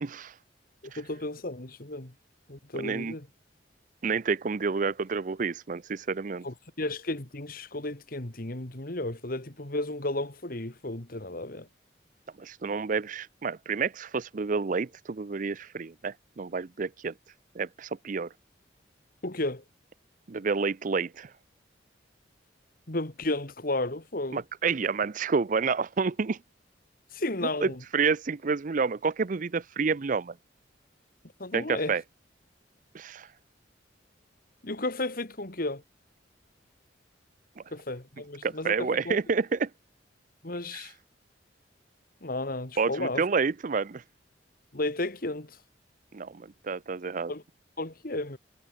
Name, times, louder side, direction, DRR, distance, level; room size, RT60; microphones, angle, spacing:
voice 1, 0.0-0.3 0.9-1.0 2.7-3.1 4.0-6.5 12.4-17.1 17.6-18.3 20.3-21.3 24.3-26.4 27.6-27.7 27.9-30.3 31.5-32.0 32.9-33.3 38.4-39.7 40.7-40.8 42.8-44.0 46.1-47.3, right 5 dB, 45° right, 0.5 m, -29 dB
voice 2, 0.8-2.1 2.5-3.3 6.4-11.7 19.2-19.6 22.9-24.4 27.1-27.8 31.4-32.0 34.6-35.8 37.7-39.2 40.4-40.9 42.2-43.2 44.7-45.6 47.3-47.4 47.8-48.4, left 2 dB, 50° left, 2.2 m, -33 dB
head